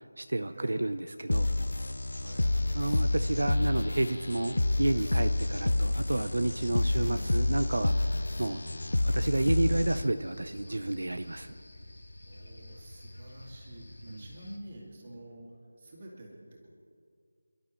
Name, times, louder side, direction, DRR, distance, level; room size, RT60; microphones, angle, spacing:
voice 1, 0.0-1.5 2.7-8.7 9.0-11.5 14.0-14.2, right 1 dB, 70° right, 9 dB, 0.6 m, -31 dB
voice 2, 0.5-0.9 2.1-2.5 6.9-7.7 10.6-10.9 12.2-15.5 15.8-16.3, right 1 dB, 20° right, -3 dB, 2.4 m, -47 dB
sound 1, 1.3-10.3, left 2 dB, 65° left, 0.3 m, -29 dB
sound 2, 2.0-14.6, left 1 dB, 90° left, 4.2 m, -47 dB
29.0 x 12.0 x 3.2 m, 2.2 s
figure-of-eight pair, 180°, 0 cm